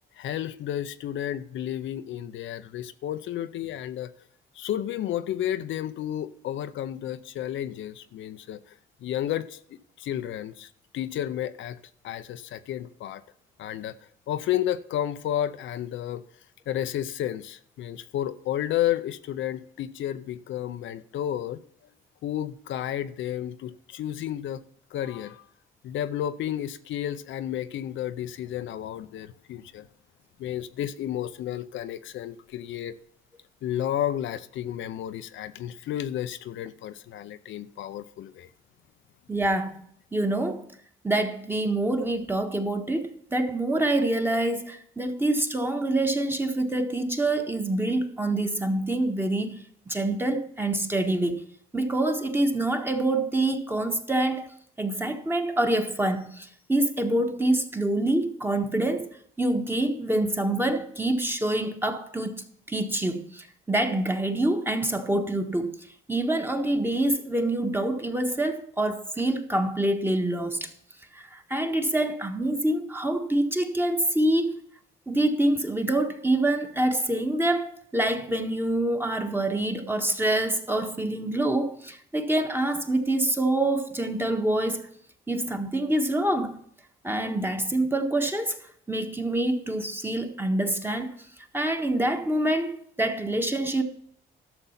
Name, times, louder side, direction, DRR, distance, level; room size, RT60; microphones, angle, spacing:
voice 1, 0.2-4.1 4.5-9.6 10.0-11.8 12.0-13.2 13.6-13.9 14.3-16.2 16.7-21.6 22.2-24.6 24.9-25.5 25.8-29.9 30.4-33.0 33.6-38.5, left 11 dB, 75° left, 0.6 m, -32 dB
voice 2, 39.3-39.8 40.1-40.6 41.0-51.4 51.7-54.5 54.8-59.1 59.4-70.7 71.1-74.6 75.1-84.9 85.3-86.6 87.0-88.6 88.9-91.2 91.5-93.8, right 1 dB, 10° right, 1.5 m, -26 dB
12.0 x 6.9 x 5.8 m
cardioid pair, 90°, 20 cm